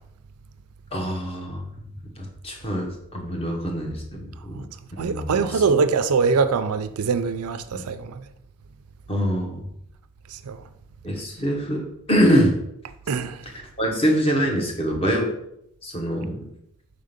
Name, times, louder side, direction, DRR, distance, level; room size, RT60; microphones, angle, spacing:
voice 1, 0.9-1.7 2.2-4.6 5.0-5.8 7.7-7.8 9.1-9.6 11.0-12.5 13.5-15.3 15.8-16.5, equal, 25° left, 1.0 m, -24 dB
voice 2, 5.0-8.2 10.5-10.6 13.1-13.4, right 5 dB, 90° right, 0.5 m, -23 dB
4.9 x 3.8 x 5.1 m
head